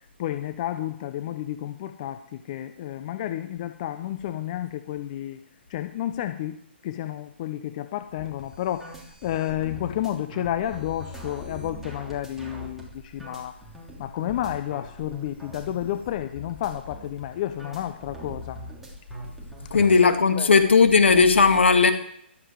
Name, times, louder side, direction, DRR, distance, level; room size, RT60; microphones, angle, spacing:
voice 1, 0.2-5.4 5.7-6.6 6.8-8.9 9.2-13.6 14.0-18.6 20.3-20.5, left 12 dB, 40° left, 10 dB, 0.8 m, -31 dB
sound 1, 8.2-20.0, equal, 5° right, 3.1 m, -42 dB
voice 2, 19.7-21.9, left 4 dB, 75° left, 7 dB, 1.9 m, -17 dB
14.5 x 12.0 x 4.8 m, 0.70 s
figure-of-eight pair, 135°, 6 cm